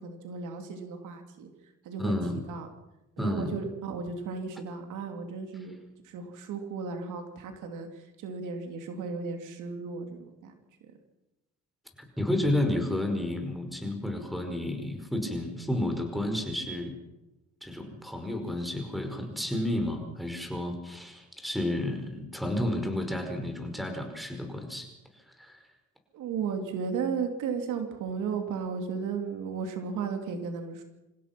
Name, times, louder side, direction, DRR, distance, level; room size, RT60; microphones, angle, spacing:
voice 1, 0.0-1.5 1.8-2.7 3.2-5.8 6.0-10.5 26.1-30.8, right 5 dB, 85° right, 5 dB, 2.9 m, -35 dB
voice 2, 2.0-2.4 3.2-3.6 12.2-16.9 17.6-24.9 25.4-25.6, left 1 dB, ahead, 5 dB, 5.3 m, -31 dB
27.0 x 16.5 x 6.0 m, 0.99 s
cardioid pair, 90°, 30 cm